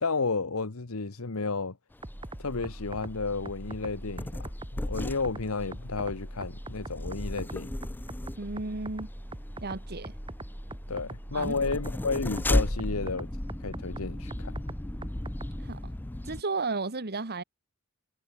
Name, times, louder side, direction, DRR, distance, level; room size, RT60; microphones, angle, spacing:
voice 1, 0.0-1.8 2.4-7.7 10.9-13.3 13.6-14.5, left 4 dB, 75° left, 1.2 m, -32 dB
sound 1, 1.9-16.4, left 1 dB, 10° left, 0.4 m, -36 dB
sound 2, 2.0-15.7, right 1 dB, 25° right, 2.5 m, -42 dB
voice 2, 8.3-9.1 9.6-10.2 11.3-11.5 15.6-15.8 16.2-17.4, right 3 dB, 50° right, 1.6 m, -33 dB
head